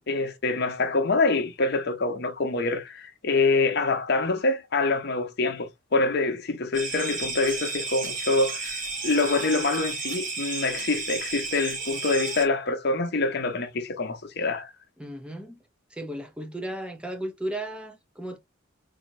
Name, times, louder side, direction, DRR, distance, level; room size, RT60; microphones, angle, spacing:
voice 1, 0.1-14.7, left 3 dB, 55° left, 0.8 m, -25 dB
sound 1, 6.7-12.4, right 4 dB, 40° right, 1.2 m, -32 dB
voice 2, 15.0-15.6 15.9-18.4, right 1 dB, 5° right, 0.7 m, -35 dB
4.2 x 2.8 x 2.8 m
head